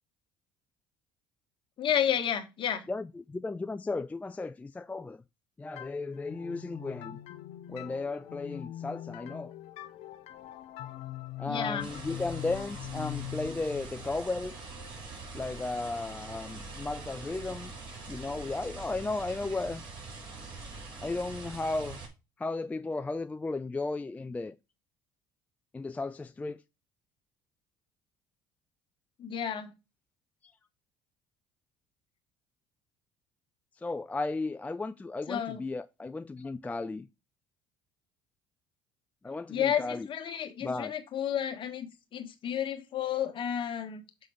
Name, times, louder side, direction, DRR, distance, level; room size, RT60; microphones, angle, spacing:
voice 1, 1.8-2.8 11.5-11.9 29.2-29.7 35.3-35.6 39.5-44.0, left 9 dB, 50° left, 1.5 m, -31 dB
voice 2, 2.9-5.2 5.6-7.2 7.7-9.5 11.4-14.6 15.3-17.7 18.1-19.8 21.0-22.0 22.4-24.5 25.7-26.6 33.8-37.1 39.2-40.1 40.6-40.9, left 3 dB, 15° left, 0.3 m, -35 dB
sound 1, 5.8-15.3, left 13 dB, 70° left, 0.6 m, -43 dB
sound 2, 11.8-22.1, right 3 dB, 45° right, 3.2 m, -44 dB
6.6 x 3.8 x 4.8 m
supercardioid pair, 75°, 11 cm